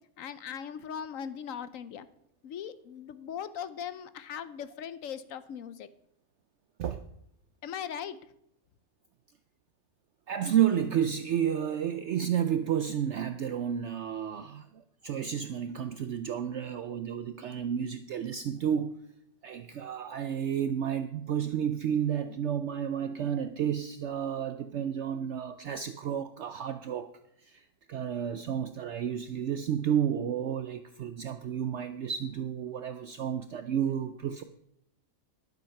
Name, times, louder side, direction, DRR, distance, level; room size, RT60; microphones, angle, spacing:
voice 1, 0.2-2.1 2.4-5.9 7.6-8.2, left 8 dB, 70° left, 14 dB, 1.0 m, -39 dB
voice 2, 10.3-19.0 19.4-27.1 27.4-34.4, right 9 dB, 65° right, 10 dB, 0.8 m, -31 dB
12.0 x 7.9 x 5.8 m, 0.75 s
omnidirectional pair, 1.5 m